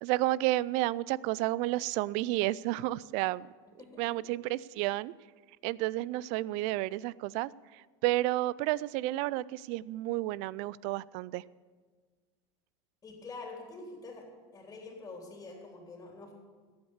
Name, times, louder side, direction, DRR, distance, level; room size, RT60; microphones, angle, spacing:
voice 1, 0.0-3.5 4.0-5.1 5.6-7.5 8.0-11.4, right 17 dB, 60° right, 22 dB, 0.4 m, -31 dB
voice 2, 3.8-4.3 13.0-14.2 14.5-16.3, left 3 dB, 25° left, 0 dB, 3.4 m, -46 dB
14.5 x 8.6 x 7.2 m, 1.5 s
supercardioid pair, 110°, 13 cm